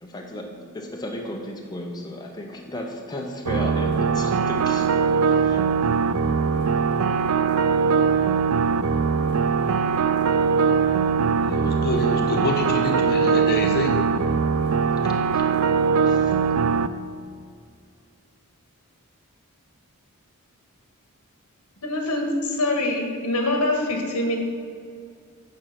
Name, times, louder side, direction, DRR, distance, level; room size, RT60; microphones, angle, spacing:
voice 1, 0.0-4.9 5.2-5.6 15.0-15.4 16.1-16.3, left 1 dB, 20° left, 0 dB, 0.8 m, -34 dB
sound 1, 3.5-16.9, right 5 dB, 85° right, 0.4 m, -21 dB
voice 2, 11.4-13.9, left 1 dB, 45° left, 2 dB, 1.2 m, -27 dB
voice 3, 21.8-24.4, left 2 dB, 85° left, 2 dB, 1.7 m, -24 dB
9.4 x 6.1 x 5.9 m, 2.2 s
head